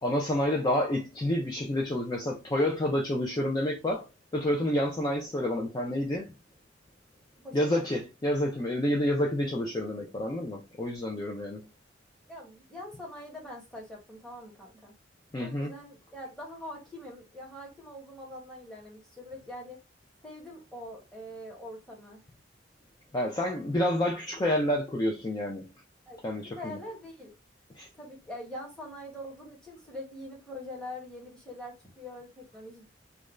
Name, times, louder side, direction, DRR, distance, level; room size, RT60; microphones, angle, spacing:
voice 1, 0.0-4.1 4.3-6.3 7.5-11.6 15.3-15.7 23.1-25.7 26.2-26.8 27.8-27.9, left 1 dB, 20° left, 0.4 m, -29 dB
voice 2, 7.4-7.8 12.3-14.9 15.4-19.8 20.2-22.2 26.1-26.2 26.6-27.3 28.0-32.9, left 1 dB, 5° left, 1.0 m, -43 dB
2.5 x 2.2 x 3.0 m
head